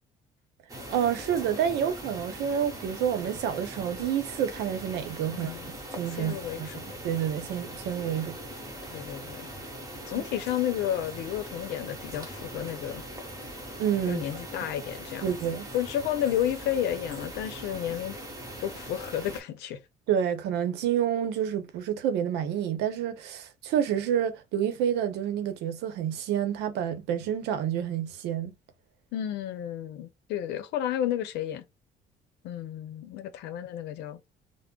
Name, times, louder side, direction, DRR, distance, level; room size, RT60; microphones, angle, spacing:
sound 1, 0.7-19.4, right 1 dB, 20° right, 1.2 m, -41 dB
voice 1, 0.9-5.5 6.0-8.4 10.2-10.3 13.8-14.2 15.2-15.7 20.1-28.5, right 9 dB, 85° right, 0.7 m, -29 dB
voice 2, 5.3-5.7 6.2-6.8 8.9-9.5 10.1-13.0 14.1-15.4 15.7-18.2 18.6-19.8 29.1-31.6 32.4-34.2, left 11 dB, 85° left, 0.7 m, -32 dB
3.7 x 2.1 x 2.2 m
cardioid pair, 110°, 17 cm